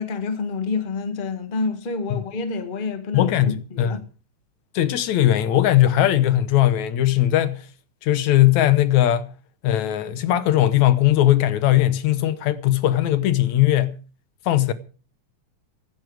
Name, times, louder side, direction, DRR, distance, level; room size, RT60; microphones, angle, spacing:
voice 1, 0.0-4.0, left 4 dB, 25° left, 1.3 m, -28 dB
voice 2, 3.1-4.0 4.8-7.6 8.0-9.3 9.6-13.9 14.5-14.7, left 13 dB, 75° left, 2.3 m, -19 dB
15.5 x 14.5 x 4.8 m
omnidirectional pair, 3.4 m